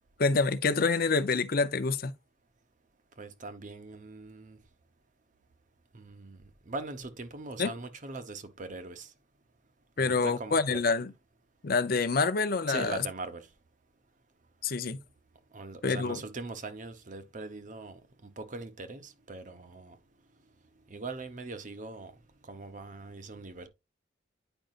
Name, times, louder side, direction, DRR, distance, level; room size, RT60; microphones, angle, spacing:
voice 1, 0.2-2.1 7.6-7.7 10.0-11.1 11.6-13.0 14.6-15.0 15.8-16.2, left 4 dB, 50° left, 0.6 m, -27 dB
voice 2, 3.2-4.6 5.9-9.1 10.0-10.8 12.7-13.5 15.5-20.0 20.9-22.1 22.4-23.7, right 3 dB, 40° right, 0.8 m, -41 dB
9.0 x 5.1 x 2.4 m
head